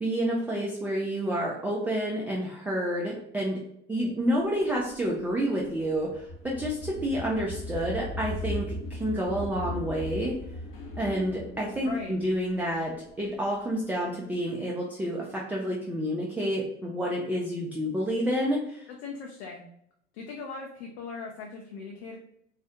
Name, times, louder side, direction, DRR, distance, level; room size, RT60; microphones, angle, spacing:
voice 1, 0.0-3.6 3.9-10.4 11.0-12.9 13.2-18.8, equal, 5° right, -3 dB, 0.3 m, -29 dB
sound 1, 4.4-13.4, left 1 dB, 40° left, 0.7 m, -38 dB
voice 2, 11.8-12.1 18.9-19.7 20.1-22.2, left 4 dB, 70° left, -1 dB, 0.6 m, -39 dB
2.3 x 2.1 x 2.7 m, 0.72 s
hypercardioid pair, 85°, 34 cm